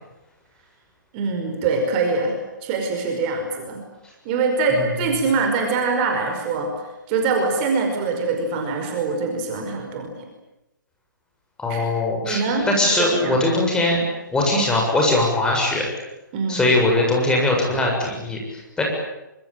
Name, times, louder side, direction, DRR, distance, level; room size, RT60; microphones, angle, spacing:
voice 1, 1.1-2.3 2.6-3.8 4.3-6.7 7.1-10.1 11.7-11.8 12.2-12.7 12.9-13.4 16.3-16.7, right 4 dB, 30° right, 4 dB, 5.3 m, -23 dB
voice 2, 11.6-12.4 12.7-14.0 14.3-15.9 16.5-18.8, left 2 dB, 5° left, -1 dB, 7.2 m, -20 dB
26.0 x 24.0 x 9.0 m, 0.96 s
figure-of-eight pair, 135°, 11 cm